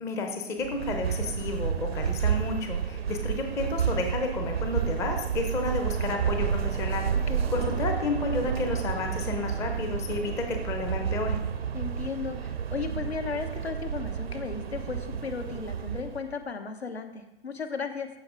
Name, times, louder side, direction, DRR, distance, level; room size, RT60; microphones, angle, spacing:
voice 1, 0.0-11.4, left 3 dB, 10° left, 4 dB, 0.5 m, -31 dB
sound 1, 0.6-16.3, right 7 dB, 75° right, 0.7 m, -30 dB
voice 2, 11.7-18.1, left 5 dB, 80° left, 7 dB, 1.1 m, -35 dB
14.0 x 4.7 x 3.7 m, 0.89 s
figure-of-eight pair, 125°, 31 cm